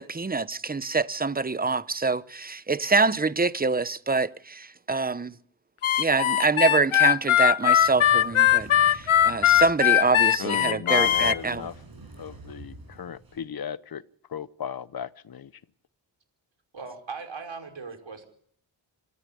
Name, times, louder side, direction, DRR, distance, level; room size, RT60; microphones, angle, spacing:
voice 1, 0.0-5.4 6.0-11.6, right 3 dB, 20° right, 0.9 m, -25 dB
Harmonica, 5.8-11.4, left 11 dB, 85° left, 0.9 m, -20 dB
sound 1, 7.7-13.4, right 2 dB, 45° right, 7.9 m, -47 dB
voice 2, 10.4-11.7 12.2-14.0 14.3-15.5, left 8 dB, 50° left, 0.9 m, -35 dB
voice 3, 16.7-18.2, right 4 dB, 70° right, 5.5 m, -38 dB
27.0 x 14.0 x 8.6 m
wide cardioid pair, 80°, 48 cm